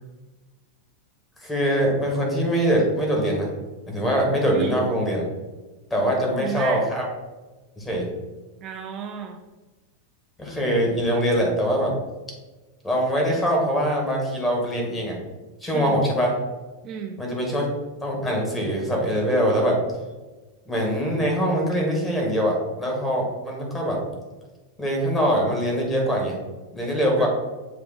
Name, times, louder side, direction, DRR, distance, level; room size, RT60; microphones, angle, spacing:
voice 1, 1.4-3.5 3.9-5.2 5.9-7.0 7.8-8.1 10.4-11.9 12.8-15.2 15.6-16.4 17.2-17.7 18.0-19.8 20.7-24.0 24.8-26.4 26.7-27.3, equal, 10° left, -1 dB, 1.9 m, -23 dB
voice 2, 4.5-4.9 6.4-6.9 8.6-9.4 15.7-16.0 16.8-17.2 27.2-27.3, right 7 dB, 35° right, 3 dB, 0.5 m, -32 dB
7.2 x 3.1 x 4.3 m, 1.2 s
figure-of-eight pair, 90°, 0 cm